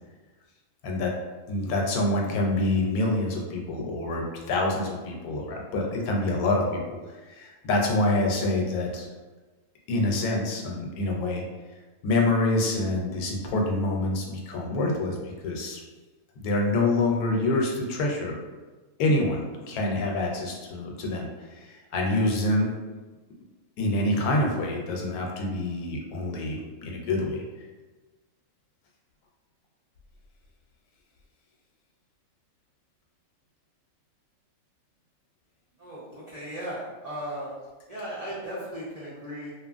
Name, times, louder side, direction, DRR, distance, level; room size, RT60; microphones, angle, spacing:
voice 1, 1.5-7.0 7.3-9.1 9.9-11.4 12.0-15.8 16.4-18.4 19.0-22.7 23.8-27.4, left 2 dB, 85° left, 0 dB, 1.1 m, -26 dB
voice 2, 35.8-37.6 37.9-39.5, equal, 70° right, -9 dB, 0.3 m, -36 dB
2.8 x 2.4 x 2.4 m, 1.2 s
omnidirectional pair, 1.5 m